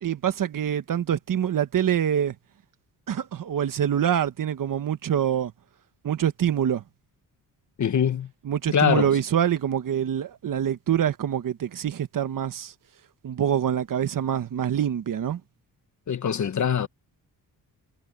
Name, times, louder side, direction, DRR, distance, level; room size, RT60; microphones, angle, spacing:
voice 1, 0.0-2.3 3.1-5.5 6.0-6.8 8.4-12.7 13.2-15.4, right 9 dB, 55° right, 1.2 m, -25 dB
voice 2, 7.8-8.3 8.7-9.1 16.1-16.9, left 8 dB, 50° left, 1.4 m, -23 dB
cardioid pair, 110°, 39 cm